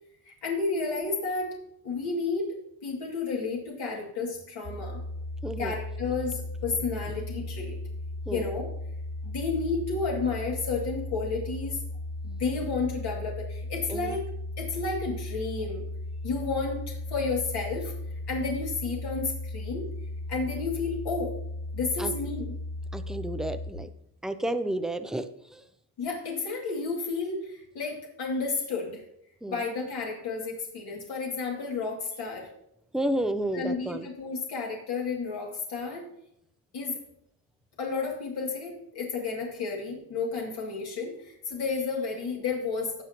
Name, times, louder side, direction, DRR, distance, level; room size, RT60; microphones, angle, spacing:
voice 1, 0.2-1.5 1.8-2.5 2.8-5.0 5.6-7.8 8.3-8.7 9.2-11.8 12.2-14.2 14.6-15.9 16.2-17.9 18.3-19.9 20.3-21.4 21.7-22.6 26.0-29.0 29.5-32.5 33.5-36.1 36.7-37.0 37.8-43.0, left 4 dB, 70° left, -2 dB, 2.6 m, -31 dB
sound 1, 4.6-23.7, left 1 dB, 45° left, 2.0 m, -36 dB
voice 2, 5.4-5.8 8.3-8.5 13.9-14.2 22.0-22.1 22.9-23.9 24.2-25.3 25.5-25.6 29.4-29.6 32.9-34.1, right 1 dB, ahead, 9 dB, 0.4 m, -31 dB
17.0 x 6.2 x 3.0 m, 0.76 s
cardioid pair, 155°, 40 cm